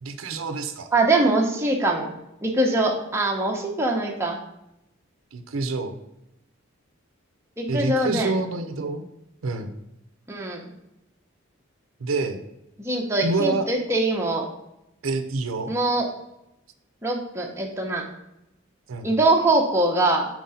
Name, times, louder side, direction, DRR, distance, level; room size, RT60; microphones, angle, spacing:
voice 1, 0.0-0.9 5.3-6.0 7.7-9.0 9.4-9.7 12.0-12.4 13.2-13.7 15.0-15.7 18.9-19.1, right 3 dB, 85° right, 8 dB, 0.6 m, -27 dB
voice 2, 0.9-2.1 2.4-4.4 7.6-8.3 10.3-10.6 12.8-14.5 15.7-16.1 17.0-18.0 19.0-20.3, right 2 dB, 15° right, 0 dB, 0.8 m, -22 dB
4.7 x 3.8 x 5.5 m, 0.85 s
head